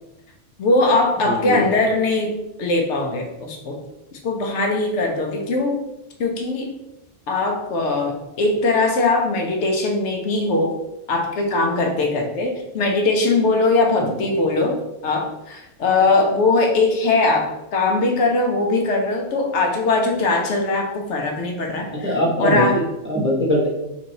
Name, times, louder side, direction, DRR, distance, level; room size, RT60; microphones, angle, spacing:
voice 1, 0.6-2.3 2.6-3.8 4.2-5.8 6.2-6.7 7.3-10.7 11.1-14.8 15.0-22.8, left 3 dB, 70° left, 2 dB, 0.9 m, -20 dB
voice 2, 1.2-1.7 14.0-14.1 21.9-23.7, left 1 dB, 15° right, -5 dB, 0.6 m, -21 dB
3.0 x 2.6 x 3.9 m, 0.92 s
omnidirectional pair, 1.3 m